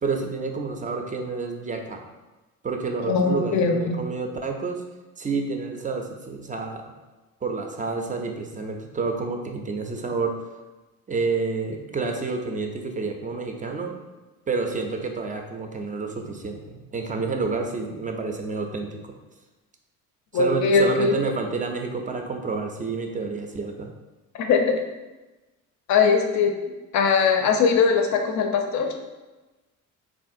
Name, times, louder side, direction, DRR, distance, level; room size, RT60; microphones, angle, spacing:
voice 1, 0.0-2.0 2.6-4.8 5.2-6.8 7.4-10.4 11.1-14.0 14.5-19.1 20.3-23.9, right 4 dB, 20° right, 3 dB, 0.4 m, -29 dB
voice 2, 3.1-4.0 20.3-21.2 24.3-24.8 25.9-26.5 26.9-28.9, left 5 dB, 45° left, 4 dB, 0.6 m, -20 dB
3.4 x 2.5 x 2.6 m, 1.1 s
hypercardioid pair, 60°, 41 cm